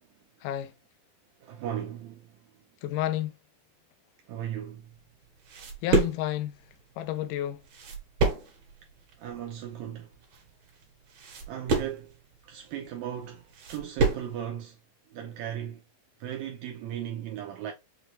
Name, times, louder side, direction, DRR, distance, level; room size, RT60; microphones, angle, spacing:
voice 1, 0.4-0.7 2.8-3.3 5.8-6.5 7.0-7.6, left 13 dB, 80° left, 2.1 m, -30 dB
voice 2, 1.4-2.4 4.3-4.9 9.2-10.1 11.5-12.1 12.4-14.8 15.1-15.8 16.2-17.7, right 10 dB, 85° right, 1.6 m, -37 dB
sound 1, 4.8-14.4, right 3 dB, 65° right, 2.7 m, -30 dB
6.1 x 2.2 x 3.2 m
omnidirectional pair, 3.9 m